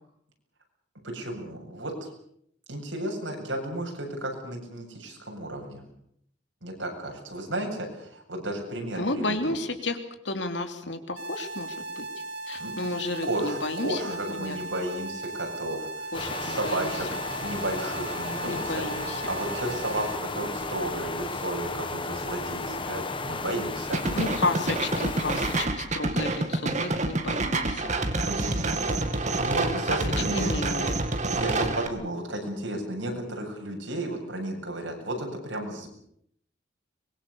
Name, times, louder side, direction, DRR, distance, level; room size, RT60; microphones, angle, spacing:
voice 1, 1.0-2.1 2.7-5.8 6.6-9.5 12.6-12.7 13.2-17.1 17.4-18.7 19.3-24.0 28.2-30.5 31.4-35.9, right 1 dB, 80° right, 1 dB, 7.9 m, -33 dB
voice 2, 8.9-10.0 10.2-12.0 12.5-14.6 16.1-16.9 18.4-19.3 24.1-27.9 30.3-31.0, left 2 dB, 65° left, 7 dB, 3.2 m, -32 dB
sound 1, 11.2-20.2, right 2 dB, 60° right, 2.4 m, -37 dB
sound 2, 16.1-25.7, left 3 dB, 25° left, 1.6 m, -34 dB
sound 3, 23.9-31.9, right 2 dB, 40° right, 2.3 m, -27 dB
24.5 x 22.5 x 7.0 m, 0.69 s
head